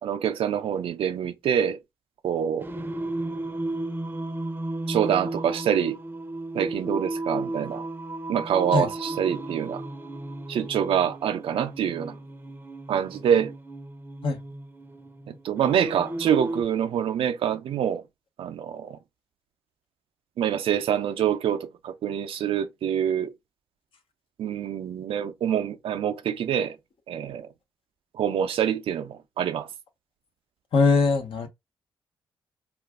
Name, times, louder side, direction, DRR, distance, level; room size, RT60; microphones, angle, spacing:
voice 1, 0.0-1.8 2.2-2.7 4.9-6.0 6.5-7.8 8.3-9.8 10.5-12.2 12.9-13.5 15.3-18.0 18.4-19.0 20.4-23.3 24.4-26.8 27.1-27.5 28.1-29.7, right 9 dB, 70° right, 0.5 m, -26 dB
Singing, 2.6-16.6, right 2 dB, 20° right, 0.6 m, -34 dB
voice 2, 30.7-31.5, left 4 dB, 65° left, 0.8 m, -21 dB
2.4 x 2.4 x 3.5 m
supercardioid pair, 50°, 10 cm